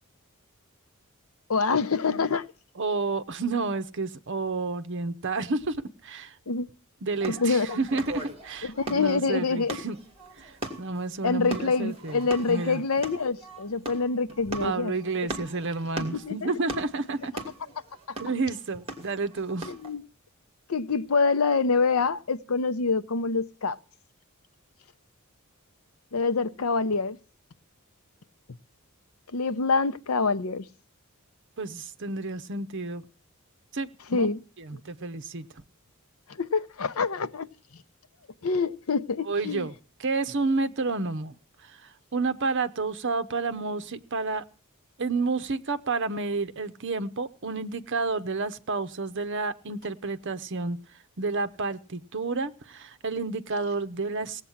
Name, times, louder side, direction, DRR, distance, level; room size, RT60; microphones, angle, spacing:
voice 1, 1.5-2.4 6.5-6.7 7.3-7.8 8.6-9.8 11.2-14.9 16.0-16.6 18.1-18.2 19.7-20.0 20.7-23.8 26.1-27.2 29.3-30.6 34.1-34.4 36.3-37.5 38.4-39.7, left 4 dB, 70° left, 0.7 m, -26 dB
voice 2, 2.8-5.8 6.0-6.4 7.0-10.0 10.4-10.5 10.8-12.2 12.5-12.8 14.6-17.3 18.2-19.7 31.6-33.0 33.7-34.3 34.6-35.5 39.3-39.7 40.0-41.4 41.6-44.4 45.0-50.8 51.2-54.5, right 3 dB, 55° right, 0.9 m, -30 dB
sound 1, 7.2-19.9, right 1 dB, 25° right, 2.6 m, -39 dB
18.0 x 8.2 x 7.2 m
head